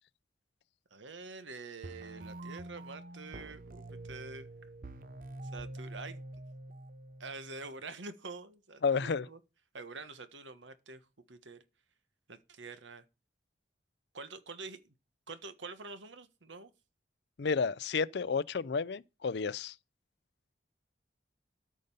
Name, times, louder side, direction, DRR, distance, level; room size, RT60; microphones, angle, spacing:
voice 1, 0.9-4.5 5.5-6.2 7.2-9.4 9.7-11.0 11.3-11.6 12.3-13.0 14.1-14.8 15.3-16.7, right 3 dB, 90° right, 1.3 m, -46 dB
sound 1, 1.8-7.8, right 1 dB, 50° right, 0.8 m, -46 dB
voice 2, 8.8-9.3 17.4-19.7, left 5 dB, 65° left, 0.5 m, -31 dB
13.5 x 5.3 x 5.4 m
head